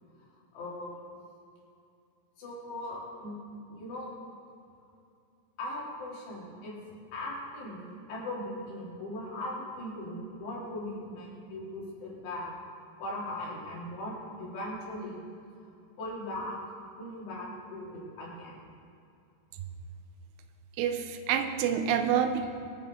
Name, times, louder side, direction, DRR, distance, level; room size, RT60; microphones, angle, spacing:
voice 1, 0.5-1.2 2.4-4.1 5.6-6.8 7.1-12.5 13.0-15.2 16.0-16.6 17.0-18.6, left 1 dB, 90° left, -6 dB, 5.4 m, -39 dB
voice 2, 20.8-22.5, right 8 dB, 90° right, 7 dB, 3.0 m, -27 dB
22.5 x 9.5 x 3.8 m, 2.6 s
omnidirectional pair, 4.7 m